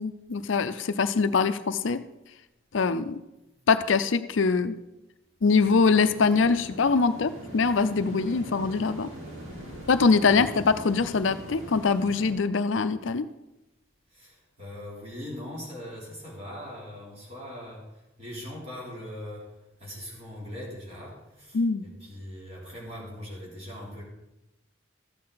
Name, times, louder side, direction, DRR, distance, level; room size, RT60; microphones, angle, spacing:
voice 1, 0.0-2.0 2.7-3.2 3.7-4.8 5.4-9.1 9.9-13.2 21.5-21.8, left 4 dB, 70° left, 11 dB, 0.5 m, -23 dB
sound 1, 5.5-12.3, equal, 90° right, 4.0 m, -42 dB
voice 2, 14.1-17.9 18.2-19.5 19.8-24.0, left 1 dB, 35° right, -4 dB, 3.2 m, -41 dB
13.0 x 8.6 x 4.0 m, 0.94 s
head